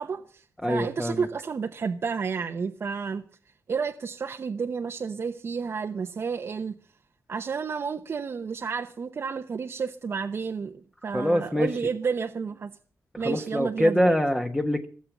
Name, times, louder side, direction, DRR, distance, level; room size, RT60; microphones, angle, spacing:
voice 1, 0.0-6.7 7.3-12.7 13.2-14.1, right 5 dB, 45° right, 5 dB, 1.0 m, -31 dB
voice 2, 0.6-1.3 11.1-11.7 13.1-14.9, equal, 5° left, 5 dB, 1.3 m, -24 dB
17.0 x 7.7 x 8.5 m, 0.42 s
wide cardioid pair, 125°, 6 cm